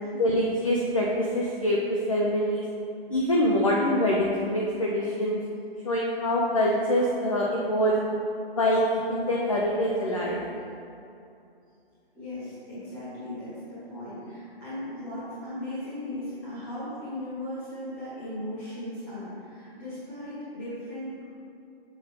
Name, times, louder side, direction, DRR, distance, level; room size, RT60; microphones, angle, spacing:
voice 1, 0.1-2.6 3.1-5.4 5.8-8.0 8.5-10.4, equal, 35° left, -3 dB, 0.5 m, -25 dB
voice 2, 12.1-21.2, left 1 dB, 5° left, -12 dB, 1.5 m, -37 dB
6.9 x 6.2 x 3.3 m, 2.6 s
hypercardioid pair, 180°, 31 cm